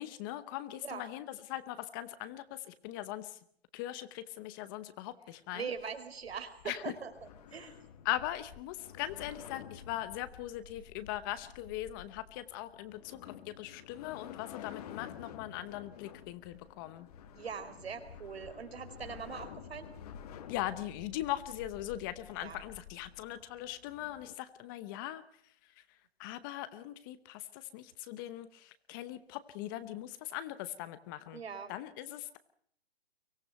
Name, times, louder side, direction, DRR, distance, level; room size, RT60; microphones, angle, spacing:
voice 1, 0.0-3.4 3.7-5.7 6.7-6.8 8.0-17.1 20.5-25.2 26.2-31.4 31.7-32.4, left 14 dB, 20° left, 13 dB, 0.9 m, -40 dB
voice 2, 5.5-7.1 7.5-7.7 17.3-19.9 22.4-22.6 31.3-31.7, right 6 dB, 75° right, 9 dB, 4.5 m, -41 dB
sound 1, 5.7-24.3, left 8 dB, 40° left, 1.9 m, -51 dB
24.0 x 17.0 x 7.9 m, 0.64 s
hypercardioid pair, 155°, 32 cm